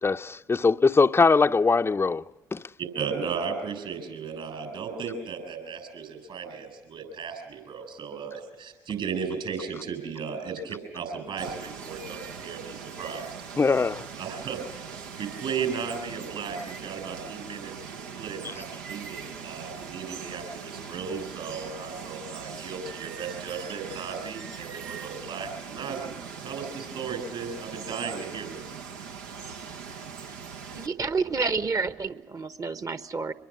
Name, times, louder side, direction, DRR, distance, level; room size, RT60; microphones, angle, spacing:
voice 1, 0.0-2.2 2.5-2.6 13.6-14.0, left 4 dB, 25° left, 0.6 m, -21 dB
voice 2, 2.8-13.6 14.2-14.9 15.2-28.8, right 6 dB, 60° right, 7.2 m, -35 dB
Water, 11.4-30.9, right 6 dB, 80° right, 0.9 m, -41 dB
voice 3, 30.7-33.3, right 4 dB, 35° right, 1.2 m, -29 dB
25.0 x 22.5 x 6.2 m
hypercardioid pair, 50°, 10 cm